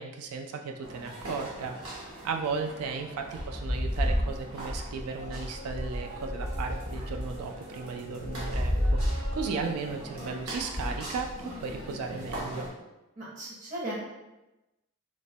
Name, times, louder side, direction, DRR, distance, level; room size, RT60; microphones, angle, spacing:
voice 1, 0.0-1.8 2.2-12.7, right 4 dB, 90° right, 3 dB, 0.3 m, -35 dB
sound 1, 0.8-12.7, equal, 70° right, 0.8 m, -33 dB
voice 2, 13.2-13.9, right 1 dB, 35° right, -6 dB, 0.6 m, -37 dB
3.0 x 2.1 x 2.7 m, 1.0 s
head